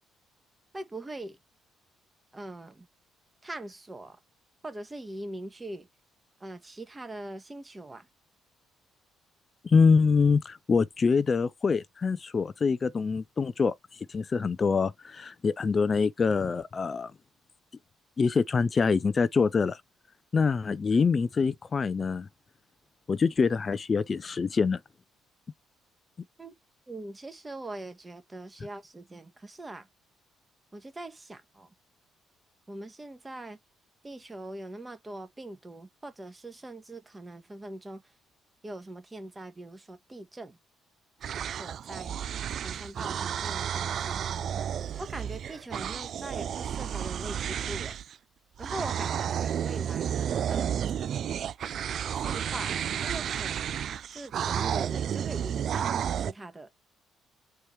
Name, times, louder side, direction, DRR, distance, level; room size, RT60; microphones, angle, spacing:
voice 1, 0.7-1.4 2.3-2.9 3.4-4.2 4.6-5.9 6.4-8.1 26.4-26.5 26.9-29.9 30.7-31.7 32.7-33.6 34.0-38.0 38.6-40.6 41.6-42.2 42.6-44.2 45.0-48.0 48.6-50.8 52.2-53.9 54.1-56.7, right 2 dB, 25° right, 1.3 m, -42 dB
voice 2, 9.6-17.1 18.2-19.8 20.3-22.3 23.1-24.8, left 5 dB, 40° left, 0.4 m, -25 dB
sound 1, 41.2-48.1 48.6-56.3, right 9 dB, 60° right, 0.3 m, -32 dB
4.5 x 3.0 x 3.2 m
hypercardioid pair, 50°, 0 cm